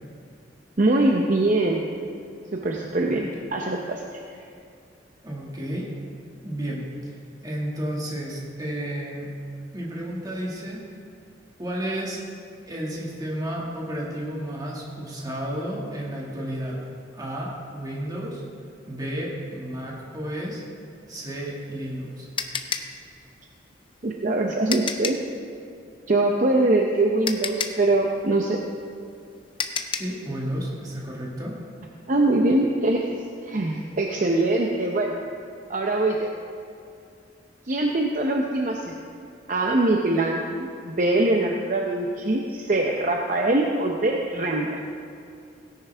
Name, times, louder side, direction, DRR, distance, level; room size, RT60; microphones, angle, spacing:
voice 1, 0.8-1.9 2.5-4.2 24.0-25.2 26.1-28.6 32.1-33.1 33.4-35.2 35.7-36.3 37.7-39.0 39.5-44.8, right 2 dB, 45° right, 1 dB, 0.7 m, -23 dB
voice 2, 5.2-5.9 6.4-7.1 7.4-9.3 9.7-10.8 11.6-12.2 12.7-16.8 17.1-18.4 18.9-20.6 21.1-22.3 29.9-31.5, right 1 dB, 20° right, -4 dB, 2.0 m, -32 dB
sound 1, 21.5-25.3 26.7-26.8 27.2-30.2, left 6 dB, 30° left, 0.6 m, -31 dB
17.0 x 10.5 x 3.4 m, 2.4 s
head